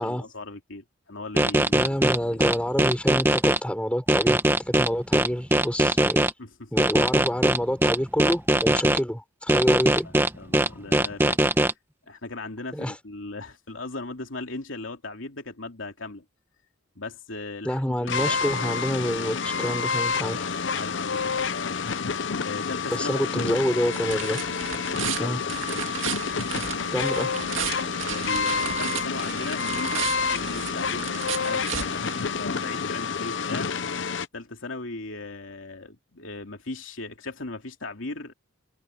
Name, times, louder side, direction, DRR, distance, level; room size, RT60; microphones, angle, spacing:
voice 1, 0.0-2.4 6.4-6.7 10.0-11.7 12.1-16.2 16.9-18.4 20.2-21.9 22.4-23.6 25.0-25.8 28.0-33.7 34.3-38.3, left 2 dB, 90° left, 2.9 m, -38 dB
sound 1, 1.4-3.6 4.1-6.3 6.8-9.0 9.5-11.7, right 1 dB, 10° right, 1.9 m, -20 dB
voice 2, 1.7-6.2 6.7-10.1 12.7-12.9 17.6-20.4 22.9-24.4 25.2-25.4 26.9-27.3, equal, 5° left, 6.5 m, -27 dB
sound 2, 18.1-34.3, left 5 dB, 70° left, 0.8 m, -28 dB
sound 3, 23.3-32.7, right 8 dB, 85° right, 2.2 m, -35 dB
head